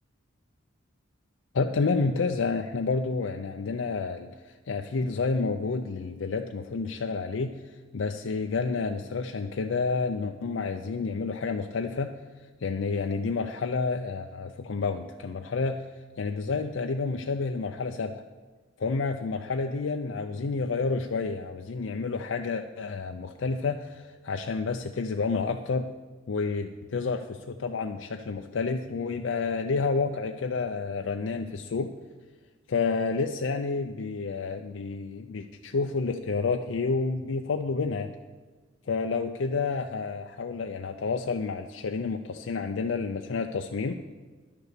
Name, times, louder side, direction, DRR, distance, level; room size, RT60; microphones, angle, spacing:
voice 1, 1.5-4.3 4.7-12.1 12.6-15.9 16.2-18.2 18.8-25.9 26.3-31.9 32.7-38.1 38.9-44.0, left 4 dB, 80° left, 5 dB, 0.5 m, -29 dB
11.0 x 6.8 x 6.6 m, 1.3 s
head